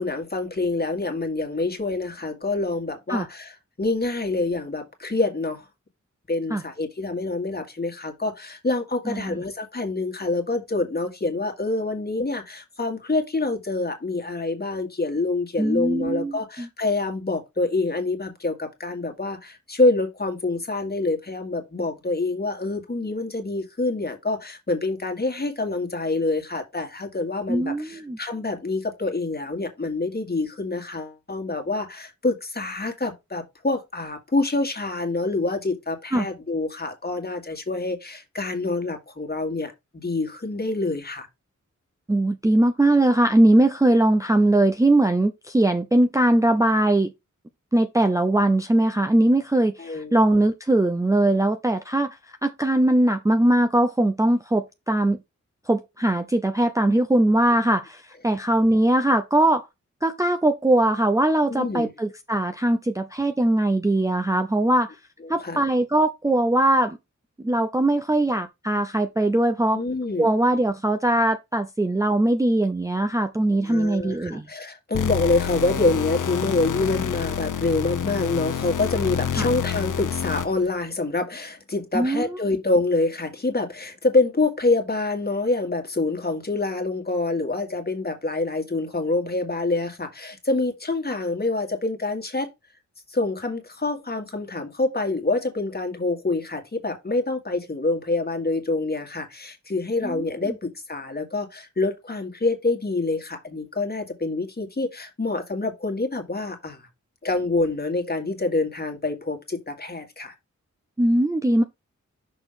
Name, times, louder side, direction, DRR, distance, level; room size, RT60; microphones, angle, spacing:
voice 1, 0.0-5.7 6.3-41.3 49.8-50.1 61.5-61.9 65.4-65.6 69.7-70.3 73.7-92.5 93.1-106.9 107.2-110.3, left 2 dB, 30° left, 1.8 m, -26 dB
voice 2, 9.1-9.4 15.6-16.7 27.5-28.2 36.1-36.3 42.1-47.1 47.7-52.2 52.4-55.2 55.7-59.7 60.0-65.0 65.3-67.0 67.4-69.8 70.2-74.5 79.4-79.5 81.9-82.3 100.0-100.3 111.0-111.6, right 1 dB, 10° right, 0.5 m, -21 dB
sound 1, 74.9-80.7, left 8 dB, 90° left, 0.7 m, -28 dB
6.3 x 3.0 x 5.6 m
wide cardioid pair, 115°, 30 cm